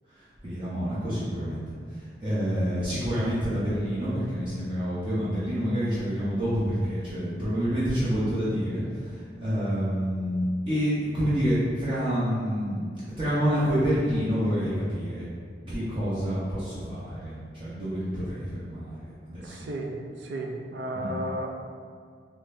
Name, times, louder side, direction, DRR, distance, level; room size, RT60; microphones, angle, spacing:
voice 1, 0.1-12.8 13.2-15.2 15.7-19.6 20.9-21.1, equal, 30° right, -11 dB, 0.7 m, -28 dB
voice 2, 19.4-19.9 20.2-21.5, right 1 dB, 75° right, 2 dB, 0.5 m, -33 dB
3.8 x 3.2 x 2.6 m, 2.1 s
head